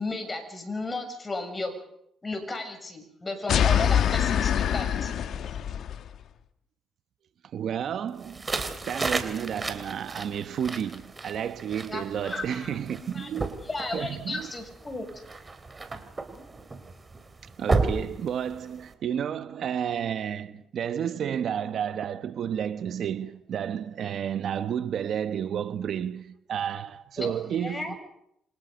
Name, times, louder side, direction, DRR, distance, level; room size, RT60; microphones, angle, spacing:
voice 1, 0.0-1.7 2.2-5.2 11.9-13.3 13.6-15.0 27.2-27.9, left 2 dB, 25° left, 7.0 m, -34 dB
sound 1, 3.5-6.1, left 9 dB, 70° left, 1.4 m, -24 dB
voice 2, 7.5-8.5 8.9-13.6 13.9-14.5 17.6-28.0, right 8 dB, 65° right, 1.2 m, -31 dB
sound 2, 8.2-18.9, right 3 dB, 25° right, 3.6 m, -33 dB
29.0 x 25.5 x 5.3 m
cardioid pair, 90°, 0 cm